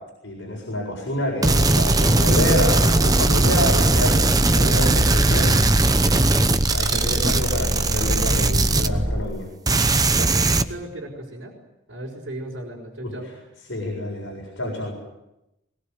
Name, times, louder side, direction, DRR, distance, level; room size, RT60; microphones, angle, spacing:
voice 1, 0.2-4.3 4.5-5.5 6.1-6.2 6.7-9.5 13.0-13.1 13.7-14.9, left 1 dB, 65° left, -1 dB, 7.4 m, -27 dB
sound 1, 1.4-9.4 9.7-10.6, right 2 dB, 20° right, 0.9 m, -19 dB
voice 2, 7.0-7.3 10.2-11.5 11.9-13.3, right 1 dB, 60° right, -4 dB, 5.4 m, -36 dB
22.0 x 21.5 x 9.5 m, 0.91 s
head